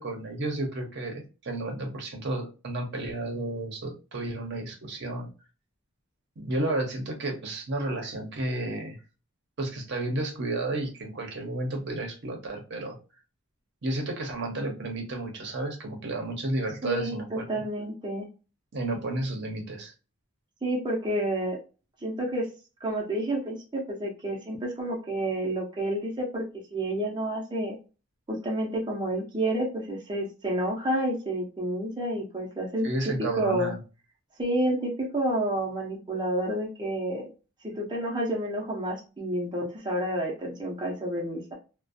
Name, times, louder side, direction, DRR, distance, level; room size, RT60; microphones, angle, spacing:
voice 1, 0.0-5.3 6.4-9.0 9.6-13.0 13.8-17.7 18.7-19.9 32.8-33.8, right 2 dB, 55° right, 2 dB, 0.7 m, -32 dB
voice 2, 16.8-18.3 20.6-21.6 22.0-22.5 22.8-26.4 26.7-27.8 28.3-32.9 33.4-33.7 34.4-37.3 37.8-41.5, right 1 dB, 20° right, -3 dB, 0.5 m, -29 dB
2.4 x 2.1 x 2.5 m, 0.33 s
head